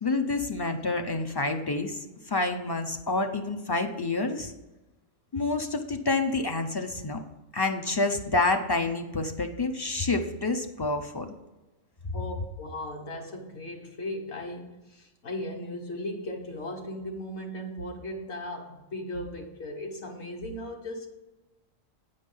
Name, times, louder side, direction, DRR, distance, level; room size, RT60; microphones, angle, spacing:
voice 1, 0.0-4.5 5.3-7.2 7.5-11.4, left 3 dB, 35° left, 5 dB, 0.3 m, -28 dB
voice 2, 12.1-21.1, left 1 dB, 60° left, 2 dB, 1.6 m, -37 dB
9.4 x 5.3 x 5.5 m, 1.1 s
omnidirectional pair, 1.4 m